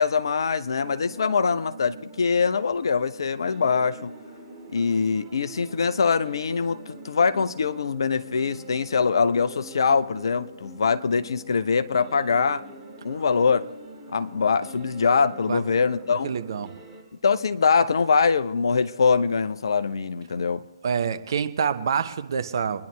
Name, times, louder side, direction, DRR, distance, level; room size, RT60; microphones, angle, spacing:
voice 1, 0.0-4.1 4.7-12.6 13.0-13.7 14.1-16.3 17.2-20.6, left 5 dB, 60° left, 0.7 m, -23 dB
sound 1, 0.8-17.0, right 1 dB, 10° right, 2.4 m, -44 dB
voice 2, 16.2-16.7 20.8-22.9, right 7 dB, 50° right, 0.9 m, -26 dB
23.5 x 10.5 x 3.2 m
figure-of-eight pair, 135°, 3 cm